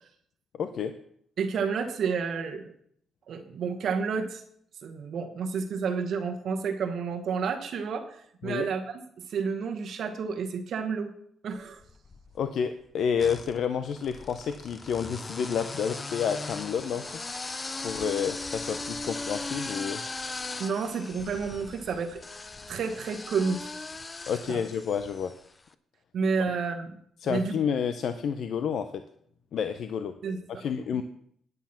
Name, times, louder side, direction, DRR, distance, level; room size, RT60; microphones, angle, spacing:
voice 1, 0.5-0.9 8.4-8.7 12.4-17.2 17.8-20.0 24.3-25.3 26.5-26.6 27.2-29.0 29.5-30.1 30.5-31.0, left 7 dB, 60° left, 10 dB, 0.6 m, -30 dB
voice 2, 1.4-2.7 3.3-4.4 4.8-9.0 9.3-11.1 11.4-11.8 20.6-22.2 22.7-23.7 24.5-24.6 26.1-27.0 27.2-27.6 30.2-30.6, right 5 dB, 55° right, 5 dB, 1.2 m, -30 dB
sound 1, 11.8-12.5 13.2-25.5, left 3 dB, 20° left, 0.5 m, -38 dB
9.6 x 9.3 x 5.8 m, 0.66 s
cardioid pair, 145°, 0 cm